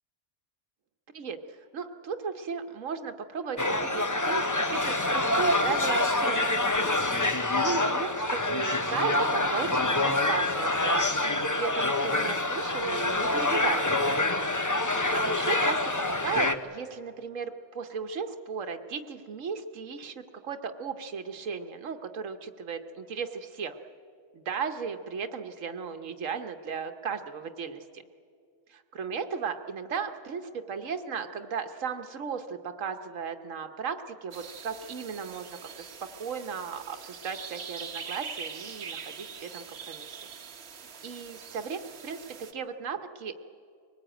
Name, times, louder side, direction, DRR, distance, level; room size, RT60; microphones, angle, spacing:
voice 1, 1.1-4.4 4.7-7.1 7.6-14.0 15.1-23.8 24.3-28.0 28.7-40.2 41.0-43.3, right 6 dB, 85° right, 8 dB, 1.4 m, -36 dB
sound 1, 3.6-16.6, left 2 dB, 20° left, 0.7 m, -26 dB
sound 2, 34.3-42.5, right 6 dB, 55° right, 1.2 m, -43 dB
23.5 x 19.5 x 9.0 m, 2.3 s
omnidirectional pair, 1.3 m